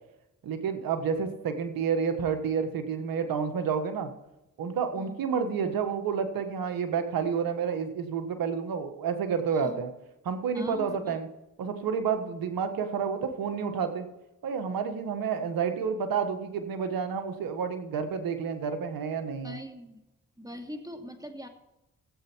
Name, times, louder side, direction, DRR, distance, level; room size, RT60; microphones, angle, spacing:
voice 1, 0.4-4.1 4.6-9.9 10.2-11.3 11.6-14.1 14.4-19.6, right 6 dB, 85° right, 8 dB, 1.5 m, -30 dB
voice 2, 10.5-11.1 19.4-20.0 20.4-21.5, equal, 10° right, 4 dB, 2.4 m, -41 dB
14.5 x 8.1 x 4.5 m, 0.93 s
supercardioid pair, 40°, 34 cm